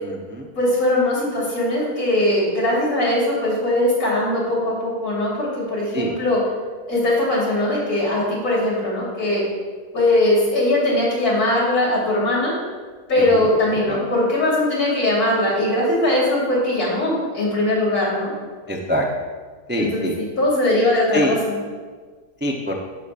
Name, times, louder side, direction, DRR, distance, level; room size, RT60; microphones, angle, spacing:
voice 1, 0.0-0.5 5.9-6.1 13.2-13.5 13.9-14.0 18.7-19.1 19.7-20.1 21.1-21.4 22.4-22.7, equal, 20° right, 0 dB, 0.3 m, -24 dB
voice 2, 0.5-6.4 6.9-9.4 9.9-12.5 13.1-18.3 19.8-21.6, left 1 dB, 80° left, -6 dB, 3.1 m, -20 dB
11.5 x 6.7 x 2.5 m, 1.5 s
omnidirectional pair, 1.6 m